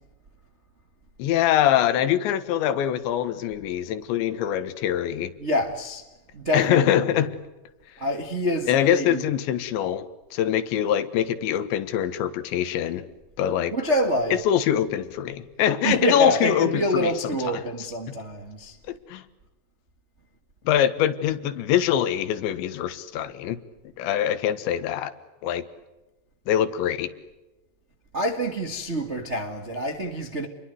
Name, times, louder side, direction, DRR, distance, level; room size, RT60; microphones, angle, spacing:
voice 1, 1.2-5.3 6.5-7.4 8.7-13.0 13.4-13.7 14.5-17.1 17.5-17.6 18.9-19.2 20.7-23.6 24.0-25.1 25.4-25.6 26.5-27.1, left 10 dB, 85° left, 3.7 m, -23 dB
voice 2, 5.4-6.0 6.3-7.3 8.0-9.2 13.7-14.4 15.8-18.8 28.1-30.5, equal, 65° right, 0.6 m, -27 dB
29.5 x 22.5 x 7.9 m
omnidirectional pair, 5.1 m